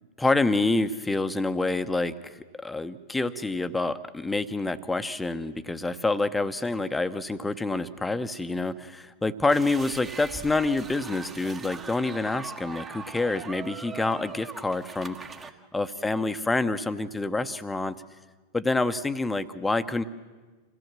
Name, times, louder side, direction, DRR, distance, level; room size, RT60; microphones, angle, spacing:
voice 1, 0.2-15.2 15.7-18.0 18.5-20.0, left 2 dB, 10° left, 11 dB, 1.0 m, -27 dB
sound 1, 9.5-15.5, right 5 dB, 20° right, 1.3 m, -41 dB
26.0 x 17.0 x 7.6 m, 1.3 s
figure-of-eight pair, 95°, 0 cm